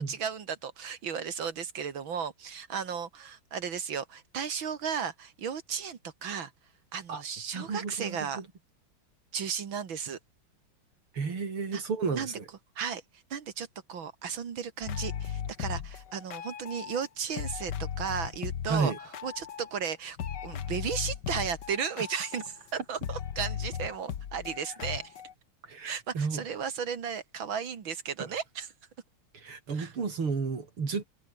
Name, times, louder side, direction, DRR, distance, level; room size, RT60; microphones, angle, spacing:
voice 1, 0.0-6.5 6.9-8.4 9.3-10.2 11.7-11.8 12.1-12.4 12.8-13.0 13.3-17.7 18.0-18.9 19.2-20.2 20.4-25.1 25.8-28.7 29.7-29.9, right 7 dB, 65° right, 2.5 m, -35 dB
voice 2, 7.5-8.4 11.1-12.4 18.7-19.0 25.7-26.4 29.3-31.1, right 5 dB, 90° right, 4.4 m, -32 dB
sound 1, 14.8-17.1 17.4-19.9 20.2-25.3, left 8 dB, 55° left, 1.9 m, -37 dB
omnidirectional pair, 2.3 m